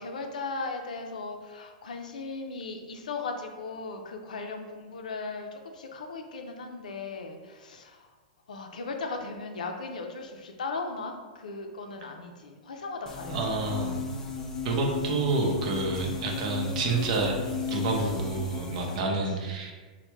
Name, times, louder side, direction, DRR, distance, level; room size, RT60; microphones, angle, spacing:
voice 1, 0.0-8.1 8.5-14.0 18.8-19.6, left 3 dB, 80° left, 4 dB, 0.4 m, -37 dB
sound 1, 13.1-19.0, left 5 dB, 15° left, 0.4 m, -35 dB
voice 2, 13.3-14.0 14.6-17.4 17.7-19.7, right 3 dB, 60° right, 1 dB, 0.6 m, -28 dB
3.1 x 2.1 x 3.0 m, 1.4 s
hypercardioid pair, 115°, 4 cm